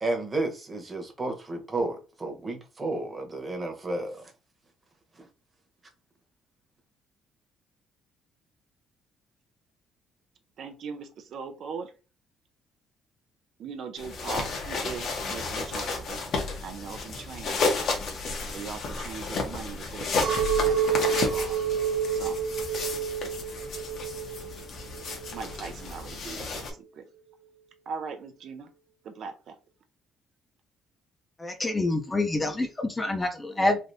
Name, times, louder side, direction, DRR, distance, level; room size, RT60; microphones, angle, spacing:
voice 1, 0.0-4.2, right 2 dB, 20° right, 1.0 m, -32 dB
voice 2, 10.6-11.9 13.6-16.2 16.6-17.7 18.5-21.6 22.1-22.4 25.3-27.1 27.9-28.7 29.0-29.6, right 5 dB, 60° right, 0.5 m, -40 dB
sound 1, 14.0-26.7, left 3 dB, 60° left, 1.0 m, -32 dB
Chink clink, 20.2-25.7, right 7 dB, 75° right, 0.8 m, -28 dB
voice 3, 31.4-33.8, left 2 dB, 15° left, 0.6 m, -27 dB
3.3 x 2.7 x 2.7 m
cardioid pair, 115°, 0 cm